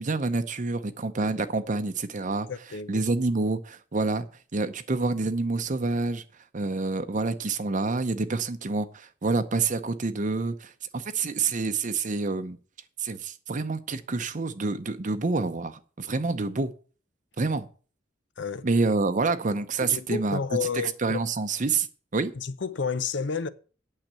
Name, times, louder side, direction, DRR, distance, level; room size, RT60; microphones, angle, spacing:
voice 1, 0.0-2.5 2.9-4.3 4.5-6.2 6.5-12.6 13.0-16.7 17.4-17.7 18.6-20.4 20.8-21.9 22.1-22.3, right 3 dB, 45° right, 0.7 m, -27 dB
voice 2, 2.5-3.1 18.4-18.7 19.8-21.2 22.4-23.5, left 5 dB, 70° left, 0.6 m, -31 dB
9.0 x 6.5 x 8.0 m
head